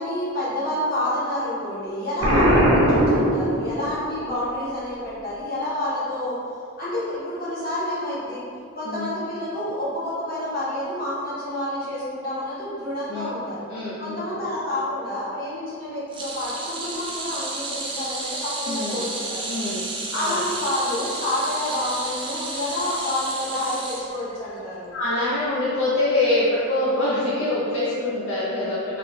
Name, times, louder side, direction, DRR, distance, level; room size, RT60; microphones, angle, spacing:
voice 1, 0.0-6.4 6.8-8.4 8.7-13.6 14.0-19.7 20.1-24.9, left 1 dB, 45° left, -10 dB, 1.2 m, -28 dB
Explosion, 2.2-4.0, equal, 80° right, 1.0 m, -19 dB
voice 2, 13.7-14.2 18.7-19.1 19.5-19.8 20.1-20.4 24.9-29.0, left 2 dB, 60° left, -8 dB, 0.5 m, -25 dB
sound 1, 16.1-24.6 24.9-25.2 26.4-26.5, right 2 dB, 25° right, 0.3 m, -32 dB
4.0 x 2.2 x 3.1 m, 2.3 s
head